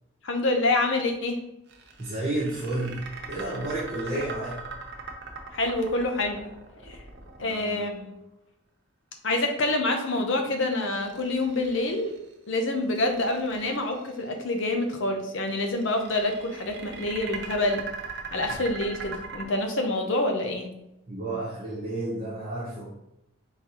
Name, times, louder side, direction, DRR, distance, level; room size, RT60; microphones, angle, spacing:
voice 1, 0.2-1.4 5.5-6.4 6.8-7.0 7.4-8.1 9.2-12.1 12.5-17.9 18.3-20.7, left 2 dB, 60° left, 3 dB, 0.7 m, -27 dB
sound 1, 1.7-7.9 10.7-12.3 12.8-14.2 15.4-19.4, right 4 dB, 50° right, 0.7 m, -40 dB
voice 2, 2.0-4.7 7.4-8.2 21.1-22.9, right 2 dB, 35° right, -9 dB, 1.1 m, -32 dB
4.1 x 3.8 x 2.9 m, 0.84 s
head